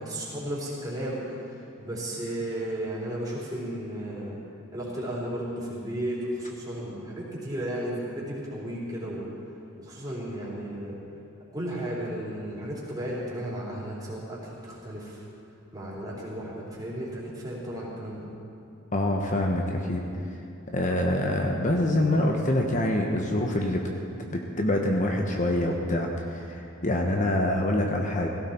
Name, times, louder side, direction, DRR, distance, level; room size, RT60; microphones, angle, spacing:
voice 1, 0.0-4.4 4.7-9.3 9.8-11.0 11.5-15.2 15.7-18.3, right 1 dB, 20° right, -7 dB, 4.0 m, -34 dB
voice 2, 18.9-20.1 20.7-23.9 24.3-28.3, left 1 dB, 40° left, 1 dB, 1.1 m, -25 dB
17.5 x 16.0 x 4.5 m, 2.6 s
head